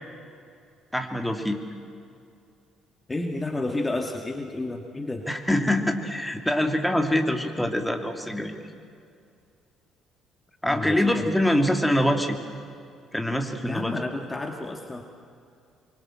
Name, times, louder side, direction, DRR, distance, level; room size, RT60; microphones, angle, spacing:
voice 1, 0.9-1.6 5.3-8.5 10.6-12.4 13.1-13.9, left 1 dB, 5° left, 4 dB, 2.8 m, -24 dB
voice 2, 3.1-5.3 10.7-11.3 13.6-15.0, left 2 dB, 20° left, 3 dB, 2.2 m, -31 dB
24.5 x 24.0 x 7.8 m, 2.4 s
hypercardioid pair, 50°, 0 cm